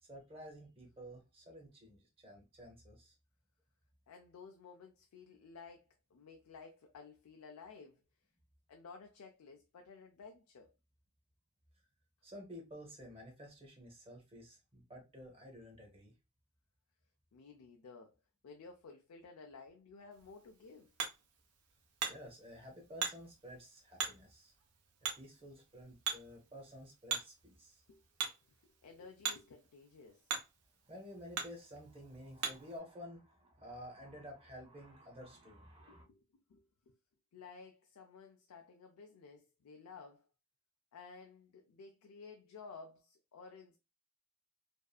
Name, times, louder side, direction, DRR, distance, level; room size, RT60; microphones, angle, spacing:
voice 1, 0.0-3.1 12.2-16.1 22.0-24.5 25.0-27.8 30.8-36.0, equal, 25° right, 0.7 m, -52 dB
voice 2, 4.1-8.0 8.7-10.7 17.3-18.1 18.4-20.9 27.9-28.0 28.6-30.3 35.9-36.2 36.5-37.0 37.3-40.3 40.9-43.8, left 4 dB, 85° left, 0.4 m, -54 dB
Hammer, 20.1-32.8, right 6 dB, 80° right, 0.7 m, -44 dB
2.6 x 2.4 x 2.2 m
head